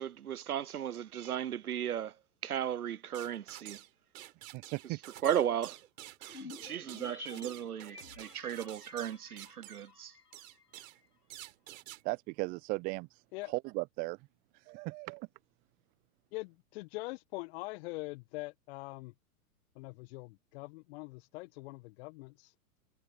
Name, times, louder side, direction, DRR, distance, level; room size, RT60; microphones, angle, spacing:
voice 1, 0.0-2.1 2.4-3.8 5.2-5.8 6.2-10.1, right 10 dB, 75° right, 0.9 m, -35 dB
sound 1, 3.1-3.9 4.1-9.9 10.3-11.0 11.3-12.0, right 14 dB, 60° right, 4.4 m, -50 dB
voice 2, 4.5-5.0 12.0-13.1 13.5-14.2 14.7-15.3, right 25 dB, 20° right, 0.4 m, -36 dB
sound 2, 6.3-10.8 11.0-11.1, left 4 dB, 90° left, 3.5 m, -51 dB
voice 3, 16.3-19.1 19.7-22.5, left 23 dB, 45° left, 1.5 m, -43 dB
figure-of-eight pair, 105°, 45 cm